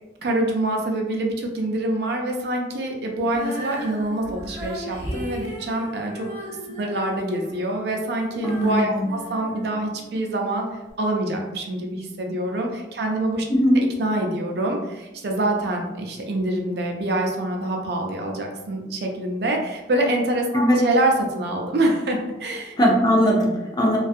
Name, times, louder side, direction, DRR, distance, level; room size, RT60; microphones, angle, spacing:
voice 1, 0.2-6.3 6.8-10.7 11.0-13.4 13.7-22.7, right 1 dB, 65° right, 1 dB, 0.4 m, -25 dB
Female singing, 3.2-10.3 10.9-11.0, equal, 10° right, 0.8 m, -36 dB
voice 2, 8.4-9.1 13.5-13.8 20.5-20.8 22.8-24.0, equal, 25° left, -1 dB, 0.4 m, -19 dB
2.6 x 2.3 x 2.4 m, 1.0 s
head